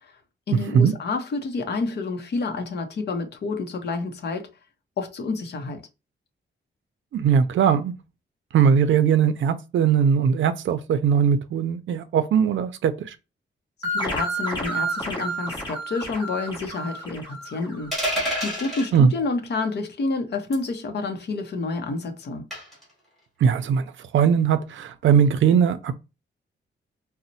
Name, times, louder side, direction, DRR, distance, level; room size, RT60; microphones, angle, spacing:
voice 1, 0.5-4.5 5.0-5.8 13.9-22.4, left 3 dB, 55° left, 0.7 m, -29 dB
voice 2, 7.1-7.9 8.5-13.2 18.9-19.1 23.4-25.9, right 7 dB, 75° right, 0.4 m, -20 dB
sound 1, 13.8-18.2, right 1 dB, 20° left, 1.3 m, -30 dB
sound 2, 17.9-18.9 20.5-20.8 22.5-22.8, equal, ahead, 1.7 m, -27 dB
4.0 x 2.1 x 2.7 m
wide cardioid pair, 165°, 20 cm